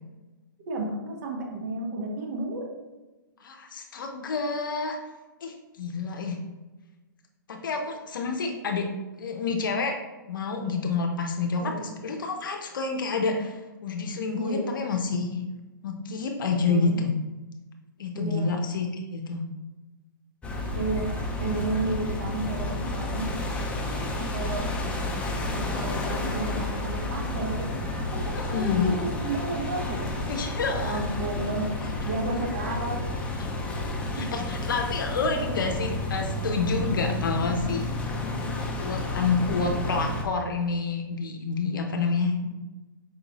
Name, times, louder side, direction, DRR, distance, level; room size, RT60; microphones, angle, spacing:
voice 1, 0.7-2.7 11.6-11.9 14.3-14.9 16.5-17.0 18.1-18.5 20.7-21.1 21.4-23.3 24.3-24.7 25.5-27.7 28.0-30.2 30.7-31.7 32.0-33.1 34.1-34.3, right 2 dB, 50° right, 1 dB, 1.0 m, -32 dB
voice 2, 3.4-5.0 5.4-6.4 7.5-8.9 9.2-9.9 10.2-15.4 15.8-17.1 18.0-18.9 19.1-19.4 23.9-24.0 28.3-28.9 30.3-31.0 31.8-31.9 32.2-32.5 33.4-33.5 34.1-37.9 38.8-42.5, left 4 dB, 70° left, 3 dB, 0.6 m, -28 dB
sound 1, 20.4-40.2, left 2 dB, 10° left, 0.5 m, -31 dB
4.8 x 2.6 x 2.9 m, 1.1 s
hypercardioid pair, 125°, 11 cm